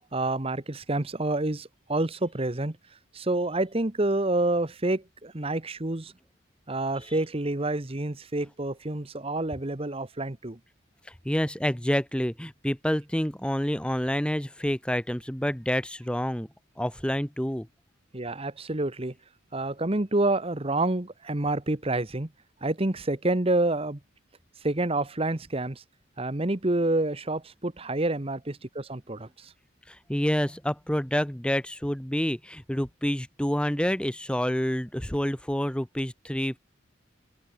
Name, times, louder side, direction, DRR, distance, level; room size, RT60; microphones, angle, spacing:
voice 1, 0.1-2.8 3.1-6.1 6.7-10.6 18.1-19.1 19.5-22.3 22.6-24.0 24.6-25.8 26.2-29.5, right 2 dB, 30° right, 1.2 m, -28 dB
voice 2, 11.0-16.5 16.8-17.7 29.9-36.6, equal, 5° left, 1.0 m, -28 dB
head